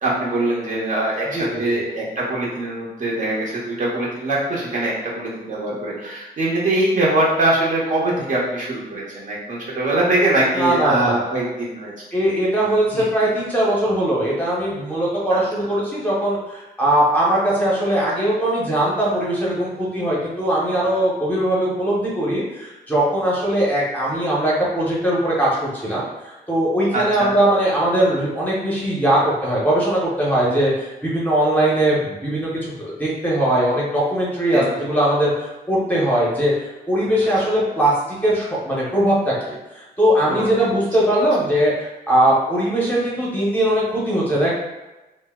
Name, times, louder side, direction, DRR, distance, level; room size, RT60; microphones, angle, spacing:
voice 1, 0.0-11.9 12.9-13.1 15.3-15.4 26.9-27.3 34.5-34.8 40.3-40.5, right 2 dB, 50° right, -5 dB, 0.8 m, -22 dB
voice 2, 1.3-1.8 10.5-11.2 12.1-36.5 36.9-44.5, right 1 dB, 10° left, -6 dB, 0.7 m, -20 dB
2.7 x 2.0 x 3.5 m, 1.0 s
wide cardioid pair, 145°, 17 cm